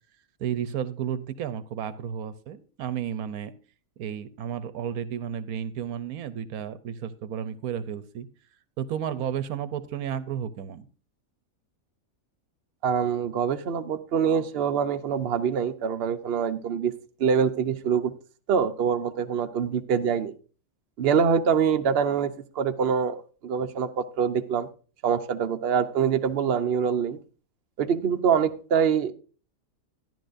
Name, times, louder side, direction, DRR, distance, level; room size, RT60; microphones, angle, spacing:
voice 1, 0.4-3.5 4.0-8.3 8.8-10.9, right 9 dB, 80° right, 13 dB, 1.2 m, -32 dB
voice 2, 12.8-16.9 17.2-18.1 18.5-20.3 21.0-24.7 25.0-27.2 27.8-29.1, right 7 dB, 50° right, 6 dB, 0.9 m, -25 dB
12.5 x 11.0 x 2.6 m, 0.37 s
omnidirectional pair, 1.5 m